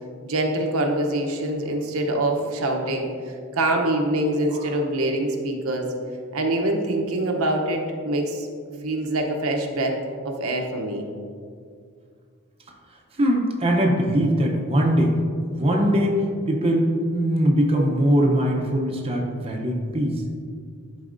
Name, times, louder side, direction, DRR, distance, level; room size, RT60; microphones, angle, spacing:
voice 1, 0.2-3.1 3.5-5.9 6.3-8.5 8.8-10.0 10.2-11.1, right 1 dB, 80° right, 2 dB, 0.8 m, -24 dB
voice 2, 13.2-15.1 15.6-16.2 16.5-20.2, equal, 25° right, -1 dB, 0.7 m, -21 dB
11.0 x 4.0 x 2.6 m, 2.2 s
head